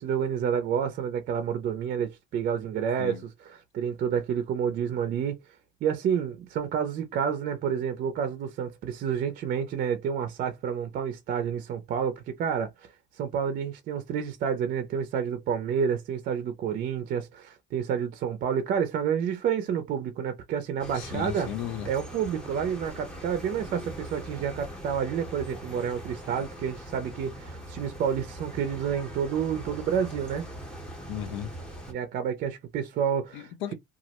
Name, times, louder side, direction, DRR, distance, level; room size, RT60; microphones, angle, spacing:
voice 1, 0.0-3.2 3.5-5.4 5.8-21.5 21.9-30.4 31.9-33.5, right 7 dB, 50° right, 0.4 m, -29 dB
sound 1, 20.8-31.9, right 1 dB, 5° left, 0.7 m, -41 dB
voice 2, 20.9-21.9 31.1-31.5 33.3-33.7, left 11 dB, 80° left, 0.4 m, -35 dB
2.3 x 2.0 x 2.8 m
cardioid pair, 140°, 20 cm